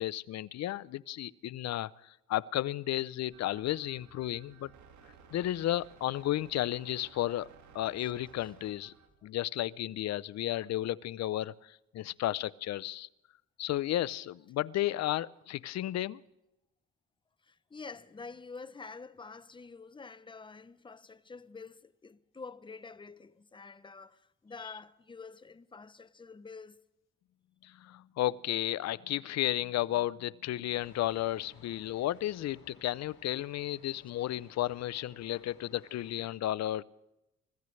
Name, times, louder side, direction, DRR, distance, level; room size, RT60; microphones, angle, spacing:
voice 1, 0.0-4.7 5.3-7.5 7.7-8.9 9.2-13.1 13.6-16.2 24.6-24.7 27.6-36.8, left 14 dB, 60° left, 0.5 m, -33 dB
sound 1, 3.3-9.1, right 6 dB, 70° right, 2.0 m, -57 dB
voice 2, 17.4-26.8, left 4 dB, 15° left, 0.6 m, -48 dB
sound 2, 30.7-36.3, left 6 dB, 75° left, 2.9 m, -59 dB
25.0 x 15.0 x 3.2 m
cardioid pair, 90°, 30 cm